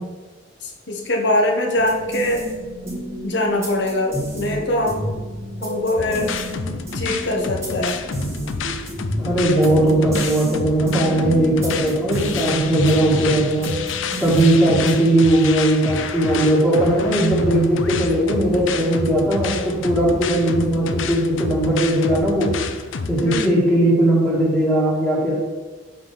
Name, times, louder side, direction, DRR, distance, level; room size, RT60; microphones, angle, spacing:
voice 1, 0.6-2.4 3.2-5.2 5.6-6.3 6.9-8.0 23.2-23.7, left 1 dB, 65° left, 1 dB, 1.3 m, -22 dB
sound 1, 1.7-15.2, equal, 15° right, 1.7 m, -31 dB
sound 2, 6.0-23.5, left 5 dB, 85° left, 0.5 m, -29 dB
voice 2, 9.2-13.7 14.2-22.5 23.1-25.3, right 1 dB, ahead, -10 dB, 1.8 m, -18 dB
5.7 x 4.9 x 5.7 m, 1.3 s
head